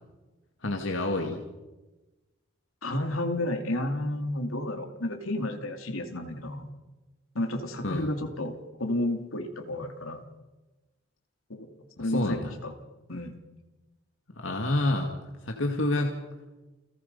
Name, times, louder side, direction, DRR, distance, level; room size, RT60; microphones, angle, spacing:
voice 1, 0.6-1.4 7.8-8.1 12.0-12.5 14.4-15.1 15.4-16.2, left 2 dB, 65° left, 3 dB, 2.0 m, -28 dB
voice 2, 2.8-6.7 7.3-8.5 8.8-10.2 11.5-11.7 12.0-12.7 13.1-13.3, left 1 dB, 85° left, 5 dB, 2.7 m, -31 dB
29.5 x 17.0 x 5.5 m, 1.2 s
head